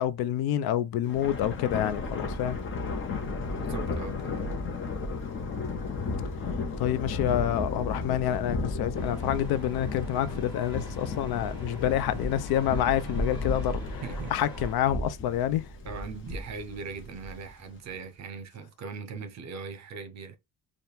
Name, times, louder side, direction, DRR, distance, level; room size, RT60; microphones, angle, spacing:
voice 1, 0.0-2.6 6.8-13.8 14.3-15.6, left 11 dB, 75° left, 0.6 m, -28 dB
Thunder, 1.0-17.6, left 3 dB, 35° left, 1.0 m, -34 dB
voice 2, 3.6-4.5 14.0-14.3 15.8-20.4, right 5 dB, 45° right, 0.9 m, -40 dB
sound 1, 8.9-14.7, left 2 dB, 10° left, 1.6 m, -46 dB
4.3 x 2.5 x 3.3 m
cardioid pair, 170°, 37 cm